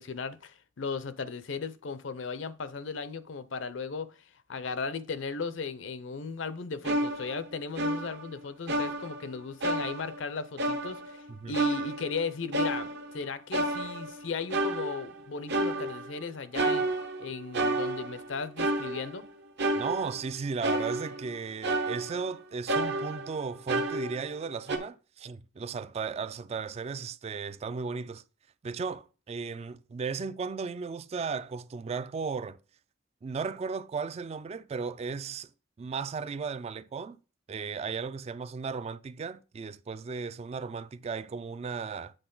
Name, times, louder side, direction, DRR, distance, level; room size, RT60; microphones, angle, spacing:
voice 1, 0.0-16.9 17.2-19.2, left 4 dB, 70° left, 0.6 m, -36 dB
sound 1, 6.8-8.3 8.7-9.4 9.6-10.3 10.6-11.2 11.5-13.2 13.5-14.2 14.5-15.2 15.5-16.2 16.5-18.3 18.6-19.3 19.6-20.3 20.6-21.4 21.6-22.3 22.7-24.4 24.7-24.8, right 2 dB, 60° right, 0.9 m, -31 dB
voice 2, 19.7-28.2 28.6-32.6 33.2-35.5 35.8-37.2 37.5-42.1, right 5 dB, 35° right, 0.3 m, -35 dB
7.9 x 4.1 x 3.8 m
head